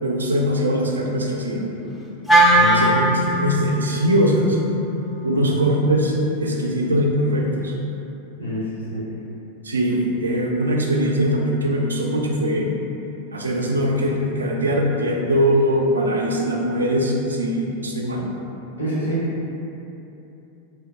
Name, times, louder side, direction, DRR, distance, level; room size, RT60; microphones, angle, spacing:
voice 1, 0.0-1.6 2.7-4.6 5.2-6.2 6.4-7.7 9.6-12.7 13.3-18.2, equal, 75° right, -1 dB, 0.3 m, -21 dB
Wind instrument woodwind instrument, 2.3-6.5, right 1 dB, 5° left, 0.3 m, -21 dB
voice 2, 2.5-2.9 5.3-5.4 8.4-9.0 18.8-19.2, equal, 80° left, -8 dB, 0.8 m, -27 dB
3.1 x 2.0 x 2.6 m, 2.9 s
figure-of-eight pair, 90°, 0 cm